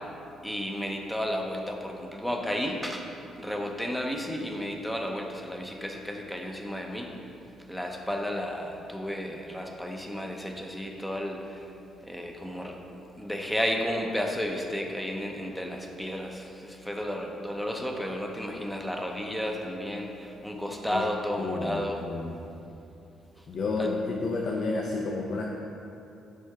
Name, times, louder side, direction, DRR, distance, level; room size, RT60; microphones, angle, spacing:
voice 1, 0.4-3.0 3.4-7.1 7.7-11.7 12.1-12.8 13.2-22.0 23.8-23.9, equal, 5° left, 1 dB, 0.7 m, -32 dB
voice 2, 21.4-22.3 23.5-25.4, left 3 dB, 60° left, -1 dB, 0.5 m, -30 dB
6.3 x 4.5 x 3.6 m, 2.8 s
cardioid pair, 90°, 0 cm